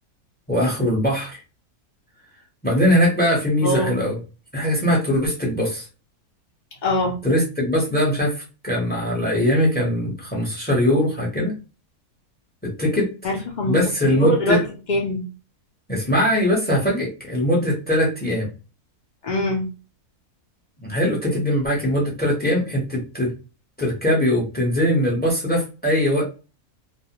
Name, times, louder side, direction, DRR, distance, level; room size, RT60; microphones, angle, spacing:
voice 1, 0.5-1.4 2.6-4.2 4.5-5.8 7.2-11.5 12.6-13.1 13.7-14.6 15.9-18.5 20.8-23.3 23.8-26.2, equal, 10° left, -3 dB, 0.5 m, -21 dB
voice 2, 6.8-7.2 13.2-13.8 14.0-14.6 14.9-15.2 19.2-19.6, left 1 dB, 75° left, -1 dB, 0.4 m, -22 dB
2.4 x 2.1 x 2.8 m, 0.32 s
omnidirectional pair, 1.6 m